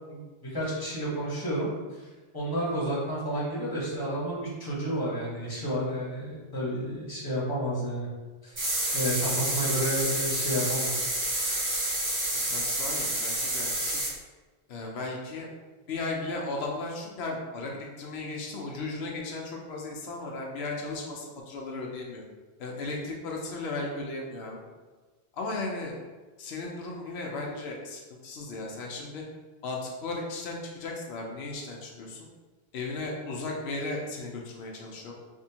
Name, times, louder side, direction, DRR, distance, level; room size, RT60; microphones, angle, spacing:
voice 1, 0.1-8.1 8.4-8.6 8.9-11.1, equal, 20° left, -7 dB, 1.1 m, -31 dB
sound 1, 8.6-14.1, right 1 dB, 25° right, 0.5 m, -29 dB
voice 2, 9.2-10.0 12.5-14.0 14.7-15.5 15.9-22.2 22.6-24.6 25.3-26.0 26.4-29.2 29.6-32.3 32.7-35.1, left 2 dB, 90° left, -1 dB, 0.9 m, -36 dB
3.5 x 2.6 x 2.8 m, 1.3 s
omnidirectional pair, 1.0 m